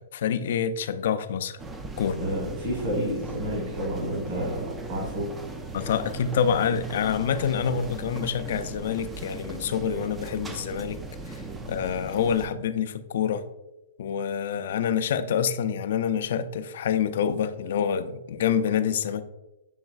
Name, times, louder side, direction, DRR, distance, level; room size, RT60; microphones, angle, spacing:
voice 1, 0.0-1.6 2.0-2.2 5.7-11.0 11.3-11.4 11.7-13.4 14.0-19.2, left 7 dB, 60° left, 0.4 m, -27 dB
sound 1, 1.6-12.5, right 3 dB, 10° right, 0.4 m, -38 dB
voice 2, 2.2-5.3, equal, 50° right, 1.5 m, -30 dB
7.1 x 3.0 x 2.4 m
hypercardioid pair, 140°, 0 cm